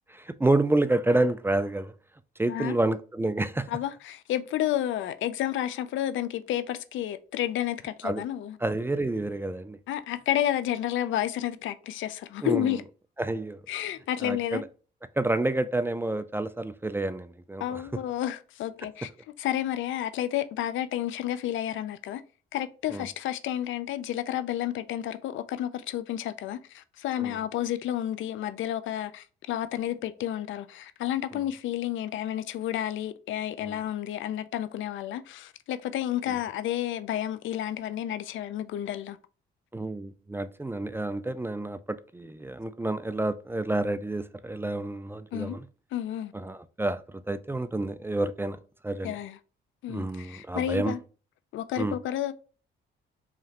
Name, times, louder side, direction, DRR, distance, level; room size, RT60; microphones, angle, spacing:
voice 1, 0.1-1.9 2.4-3.7 8.0-8.2 8.6-9.8 12.4-12.7 13.2-13.6 14.2-14.7 15.2-17.8 22.9-23.1 27.2-27.4 31.3-31.4 33.6-33.8 36.3-36.4 39.7-45.6 46.3-48.6 48.8-49.2 49.9-50.9 51.8-52.0, right 2 dB, 10° right, 0.3 m, -29 dB
voice 2, 3.7-8.6 9.9-12.8 13.7-14.6 17.6-19.1 19.4-22.2 22.5-39.2 45.3-45.6 45.9-46.3 49.0-49.4 49.8-51.0 51.5-52.3, left 12 dB, 75° left, 0.5 m, -31 dB
4.9 x 3.1 x 2.9 m
cardioid pair, 90°, 20 cm